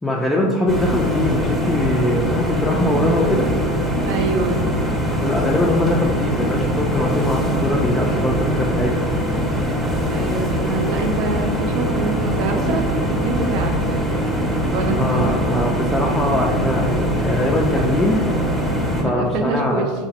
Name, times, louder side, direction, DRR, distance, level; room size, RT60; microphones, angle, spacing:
voice 1, 0.0-3.5 5.2-9.0 15.0-18.2 18.9-19.9, left 1 dB, 10° left, -3 dB, 0.3 m, -21 dB
sound 1, 0.7-19.0, equal, 10° right, 0.8 m, -22 dB
voice 2, 4.0-4.7 10.0-14.1 14.7-15.5 19.0-19.9, right 3 dB, 60° right, 4 dB, 0.4 m, -25 dB
2.9 x 2.1 x 2.8 m, 1.5 s
hypercardioid pair, 100°, 0 cm